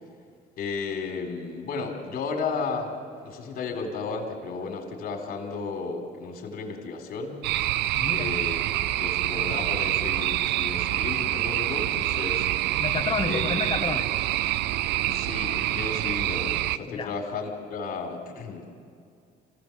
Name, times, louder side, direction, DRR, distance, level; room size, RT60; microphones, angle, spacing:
voice 1, 0.6-7.4 8.1-8.6 9.0-12.5 13.2-13.4 15.1-18.7, left 4 dB, 60° left, 3 dB, 4.3 m, -33 dB
sound 1, 7.4-16.8, right 15 dB, 90° right, 0.5 m, -26 dB
voice 2, 8.0-8.3 12.8-14.2 15.1-15.2 16.9-17.1, left 5 dB, 30° left, 6 dB, 1.7 m, -31 dB
26.5 x 16.5 x 7.7 m, 2.3 s
cardioid pair, 110°, 17 cm